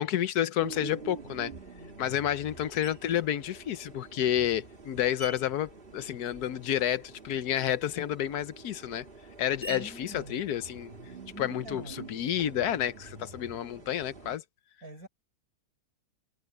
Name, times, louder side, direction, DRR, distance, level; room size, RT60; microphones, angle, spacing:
voice 1, 0.0-1.5 2.0-9.0 9.4-10.9 11.4-14.4, left 11 dB, 80° left, 1.3 m, -30 dB
sound 1, 0.6-14.4, right 5 dB, 35° right, 2.3 m, -47 dB
Screech, 2.8-3.3 4.0-6.7 7.0-11.3, right 2 dB, 25° left, 2.2 m, -49 dB
voice 2, 9.7-10.5 11.3-12.1 14.8-15.1, right 1 dB, 70° right, 6.3 m, -45 dB
omnidirectional pair, 1.6 m